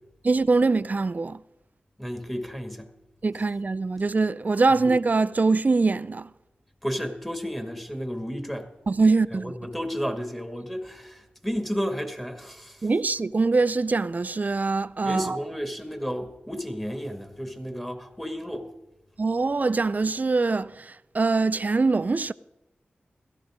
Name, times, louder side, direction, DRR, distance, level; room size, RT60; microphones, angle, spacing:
voice 1, 0.2-1.4 3.2-6.3 8.9-9.5 12.8-15.4 19.2-22.3, right 3 dB, 45° right, 0.5 m, -23 dB
voice 2, 2.0-2.9 6.8-8.7 9.3-12.8 15.0-18.7, equal, 5° left, 2.1 m, -32 dB
16.5 x 13.5 x 3.7 m
cardioid pair, 45°, 4 cm